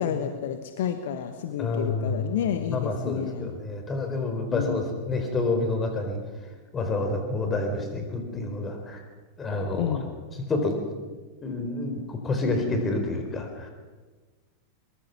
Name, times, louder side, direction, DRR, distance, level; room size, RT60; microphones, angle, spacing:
voice 1, 0.0-3.5 4.5-4.8 9.8-10.1, left 9 dB, 55° left, 8 dB, 1.3 m, -30 dB
voice 2, 1.6-6.2 6.7-9.0 9.4-10.0 10.5-10.8 11.4-13.7, left 2 dB, 20° left, 4 dB, 4.5 m, -28 dB
23.0 x 22.0 x 6.1 m, 1.4 s
figure-of-eight pair, 90°, 0 cm